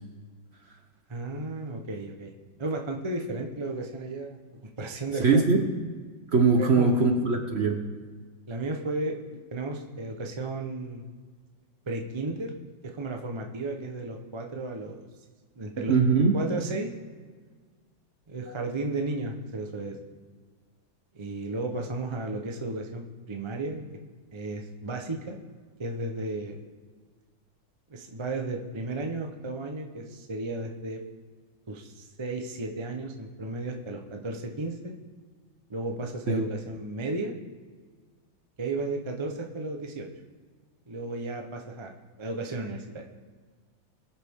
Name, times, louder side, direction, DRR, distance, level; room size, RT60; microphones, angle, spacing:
voice 1, 1.1-2.3 2.6-4.4 4.8-5.4 6.7-7.2 8.5-9.2 9.5-11.0 11.9-12.5 12.9-15.0 15.6-15.9 16.3-16.9 18.3-20.0 21.1-23.9 24.3-25.4 25.8-26.6 27.9-31.0 31.7-34.9 35.7-37.3 38.6-40.1 40.9-41.9 42.2-43.0, right 2 dB, 30° right, 2 dB, 0.5 m, -34 dB
voice 2, 5.2-5.6 6.3-7.8 15.8-16.4 18.4-18.5 36.3-36.4, right 4 dB, 45° right, 4 dB, 0.9 m, -22 dB
21.5 x 7.4 x 3.7 m, 1.5 s
omnidirectional pair, 2.1 m